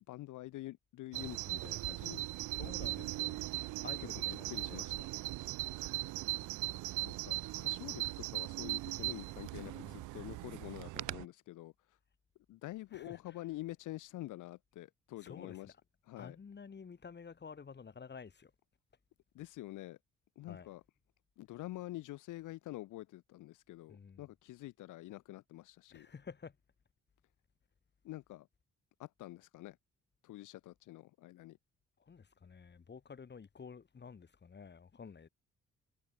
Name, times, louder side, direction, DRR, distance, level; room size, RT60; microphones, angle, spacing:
voice 1, 0.1-2.2 2.6-3.1 4.1-4.2 4.5-5.1 7.2-12.0 12.5-15.7 16.1-16.4 19.3-20.0 20.4-20.8 21.4-26.1 28.0-28.5 29.0-29.8 30.2-31.6, left 16 dB, 85° left, 1.3 m, -47 dB
Bird vocalization bird call bird song, 1.1-11.3, right 19 dB, 80° right, 0.5 m, -39 dB
voice 2, 2.5-3.4 3.8-4.8 9.6-10.1 12.9-13.4 15.2-15.7 16.2-18.5 20.5-20.7 23.9-24.3 25.9-26.6 32.0-35.3, left 5 dB, 35° left, 2.8 m, -51 dB
cardioid pair, 90°, 30 cm